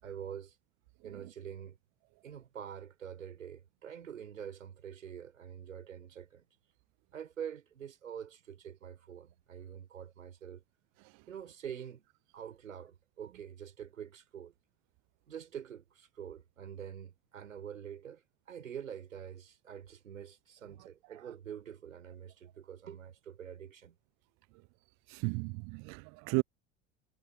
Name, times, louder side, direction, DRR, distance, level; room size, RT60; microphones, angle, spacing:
voice 1, 0.0-0.6 1.0-1.8 2.2-6.5 7.1-10.6 11.3-12.1 12.3-14.5 15.3-24.0, right 8 dB, 80° right, 5.8 m, -46 dB
voice 2, 25.1-26.4, right 35 dB, 45° right, 0.6 m, -34 dB
figure-of-eight pair, 70°, 39 cm